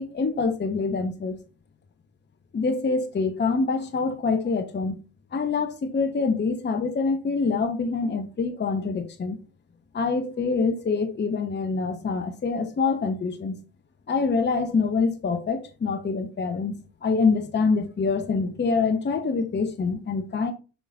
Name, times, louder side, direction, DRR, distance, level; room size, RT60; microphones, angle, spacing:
voice 1, 0.0-1.4 2.5-5.0 5.3-9.4 9.9-13.6 14.1-16.8 17.0-20.5, left 4 dB, 25° left, 1.0 m, -25 dB
7.0 x 5.7 x 2.6 m
figure-of-eight pair, 50°, 44 cm